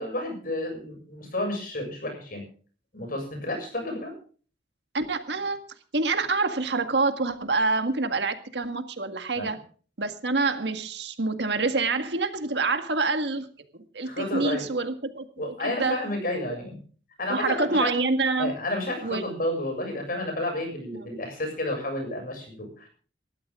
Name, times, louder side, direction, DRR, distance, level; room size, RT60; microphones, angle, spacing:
voice 1, 0.0-2.4 2.9-4.1 9.4-9.5 14.0-14.6 15.4-16.8 17.2-18.0 18.4-22.9, left 1 dB, 55° left, 4 dB, 7.2 m, -31 dB
voice 2, 4.9-5.6 5.9-9.6 10.0-13.5 13.9-16.0 16.5-16.6 17.3-18.5 19.0-19.2, right 3 dB, 70° right, 7 dB, 1.8 m, -26 dB
20.5 x 13.5 x 3.7 m, 0.41 s
head